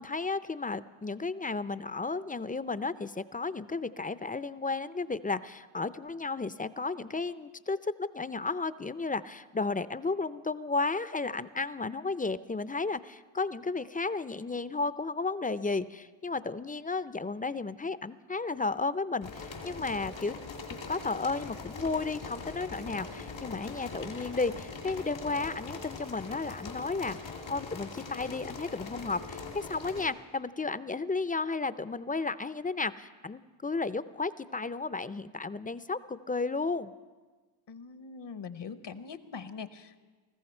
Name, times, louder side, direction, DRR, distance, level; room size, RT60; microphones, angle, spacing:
voice 1, 0.0-20.4 20.9-36.9, left 3 dB, 20° left, 15 dB, 0.4 m, -33 dB
sound 1, 19.2-30.1, left 4 dB, 90° left, 2.1 m, -42 dB
voice 2, 37.7-40.0, left 5 dB, 65° left, 12 dB, 0.9 m, -42 dB
20.0 x 15.0 x 4.4 m, 1.4 s
cardioid pair, 50°, 46 cm